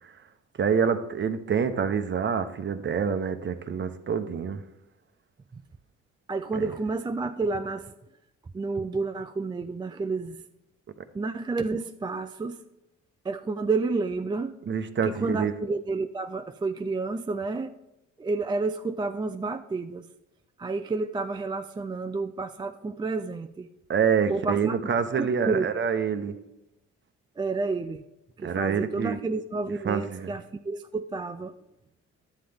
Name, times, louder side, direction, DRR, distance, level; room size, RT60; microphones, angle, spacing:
voice 1, 0.6-4.6 6.5-6.6 14.7-15.5 23.9-26.3 28.4-29.2 29.8-30.3, right 6 dB, 40° right, 9 dB, 0.8 m, -26 dB
voice 2, 6.3-7.9 8.5-10.4 11.1-12.6 13.2-14.5 15.0-17.8 18.2-20.1 20.6-23.7 24.3-25.7 27.4-28.0 28.4-31.5, right 3 dB, 15° right, 8 dB, 0.3 m, -30 dB
11.5 x 7.7 x 3.5 m, 0.92 s
cardioid pair, 90°, 30 cm